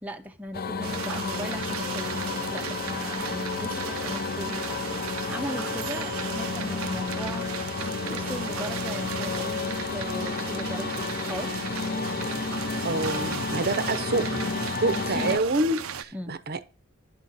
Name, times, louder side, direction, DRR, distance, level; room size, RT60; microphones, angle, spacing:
voice 1, 0.0-4.8 5.3-7.5 8.1-11.6 14.9-15.4 16.1-16.3, equal, 5° right, 0.6 m, -38 dB
sound 1, 0.5-15.4, left 4 dB, 45° left, 0.5 m, -31 dB
sound 2, 0.8-16.0, right 8 dB, 85° right, 0.6 m, -36 dB
voice 2, 12.8-14.3 14.8-16.6, right 2 dB, 50° right, 0.7 m, -27 dB
11.0 x 6.2 x 4.0 m
head